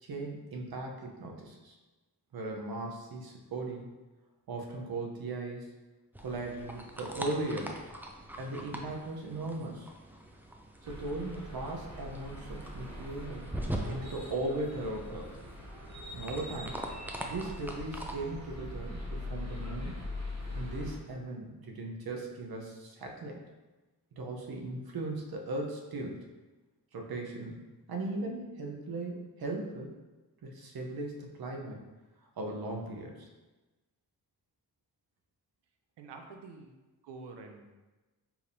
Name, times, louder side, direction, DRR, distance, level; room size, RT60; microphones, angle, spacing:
voice 1, 0.0-1.8 2.3-3.9 4.5-5.7 6.2-7.8 8.4-9.9 10.8-13.5 13.9-15.3 16.1-16.8 17.3-20.0 20.5-23.4 24.2-26.2 26.9-27.6 27.9-29.9 30.4-31.8 32.4-33.3, right 2 dB, 60° right, 1 dB, 0.8 m, -38 dB
sound 1, 6.1-18.1, right 1 dB, 5° right, 0.4 m, -43 dB
sound 2, 10.8-21.0, left 1 dB, 40° right, 1.0 m, -42 dB
voice 2, 36.0-36.7 37.0-37.7, right 4 dB, 90° right, 4 dB, 0.6 m, -47 dB
4.7 x 3.4 x 2.7 m, 1.2 s
cardioid pair, 75°, 40 cm